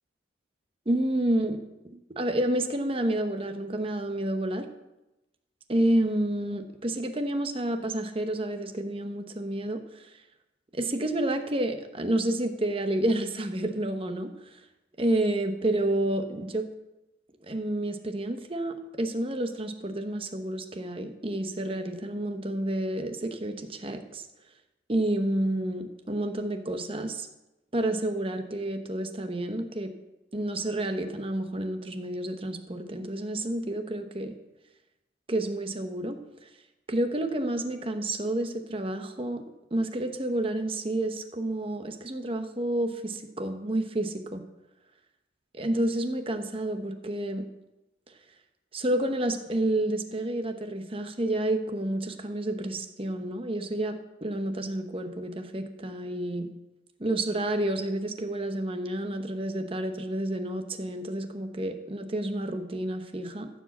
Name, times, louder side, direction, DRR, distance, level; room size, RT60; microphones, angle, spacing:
voice 1, 0.9-1.6 2.2-4.7 5.7-10.1 10.7-14.3 15.0-16.7 17.4-24.3 24.9-27.3 27.7-29.9 30.3-34.3 35.3-36.2 36.9-39.4 39.7-44.4 45.5-47.5 48.7-56.5 57.0-63.5, right 1 dB, 30° right, 7 dB, 0.9 m, -29 dB
14.0 x 4.8 x 7.2 m, 0.97 s
head